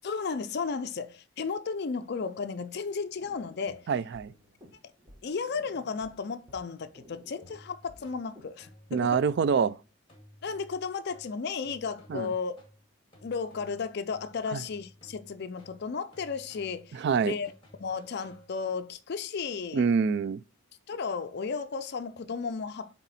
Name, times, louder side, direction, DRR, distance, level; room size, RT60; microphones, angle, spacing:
voice 1, 0.0-3.9 5.2-9.2 10.4-12.5 13.2-17.5 17.8-19.9 20.9-22.9, left 5 dB, 50° left, 0.4 m, -34 dB
sound 1, 2.9-8.6, equal, 15° right, 1.4 m, -56 dB
voice 2, 3.9-4.3 8.9-9.8 12.1-12.3 14.5-14.6 16.9-17.3 19.7-20.4, right 6 dB, 50° right, 0.3 m, -26 dB
sound 2, 7.4-18.9, left 1 dB, 25° left, 1.9 m, -56 dB
8.1 x 3.6 x 4.1 m
head